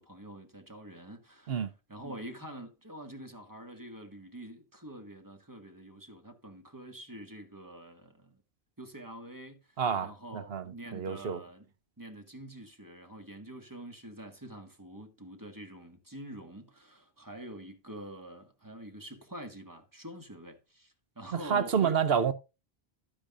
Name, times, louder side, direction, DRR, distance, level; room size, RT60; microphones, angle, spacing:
voice 1, 0.0-8.4 8.8-11.7 12.0-22.0, right 1 dB, 20° right, 1.8 m, -46 dB
voice 2, 9.8-11.4 21.5-22.3, right 7 dB, 70° right, 1.0 m, -29 dB
12.0 x 10.0 x 2.5 m
omnidirectional pair, 1.1 m